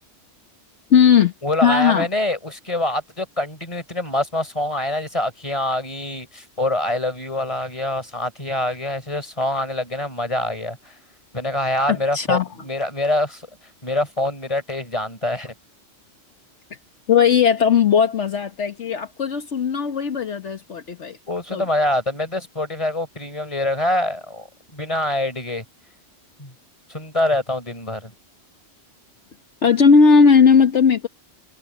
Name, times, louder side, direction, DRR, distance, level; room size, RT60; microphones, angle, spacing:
voice 1, 0.9-1.3 1.6-2.1 11.9-12.5 17.1-21.2 21.5-21.6 29.6-31.1, left 6 dB, 70° left, 1.5 m, -17 dB
voice 2, 1.4-11.0 11.3-13.4 13.8-15.5 21.3-25.6 26.4-26.5 26.9-28.1, left 1 dB, 25° left, 4.3 m, -25 dB
omnidirectional pair, 1.2 m